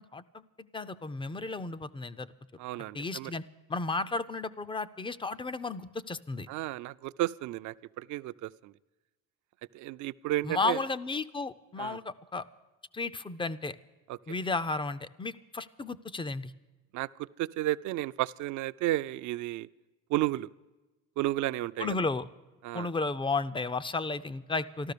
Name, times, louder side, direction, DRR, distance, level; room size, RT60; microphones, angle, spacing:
voice 1, 0.0-2.3 2.9-3.4 3.7-6.5 10.4-12.4 12.9-13.8 14.3-16.5 21.8-22.3 22.7-24.9, left 3 dB, 15° left, 15 dB, 0.4 m, -33 dB
voice 2, 2.6-3.3 6.5-8.7 9.7-10.8 11.8-12.0 14.1-14.2 16.9-19.7 20.1-20.5 21.2-22.0 22.6-22.9, right 15 dB, 55° right, 15 dB, 0.5 m, -32 dB
13.5 x 13.0 x 6.7 m, 1.1 s
supercardioid pair, 105°, 36 cm